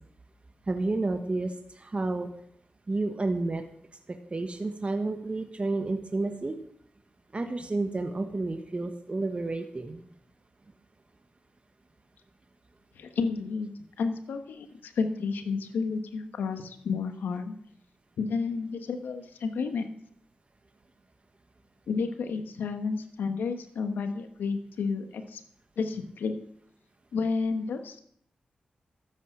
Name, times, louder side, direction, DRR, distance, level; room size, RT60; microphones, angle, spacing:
voice 1, 0.7-2.3 2.9-3.6 4.3-6.6 7.3-10.1, right 2 dB, 40° right, 6 dB, 1.4 m, -30 dB
voice 2, 13.0-13.7 14.0-17.5 18.2-19.9 21.9-25.4 25.8-26.4 27.1-28.0, left 4 dB, 85° left, 8 dB, 1.3 m, -31 dB
13.0 x 8.4 x 7.2 m, 0.67 s
supercardioid pair, 45°, 3 cm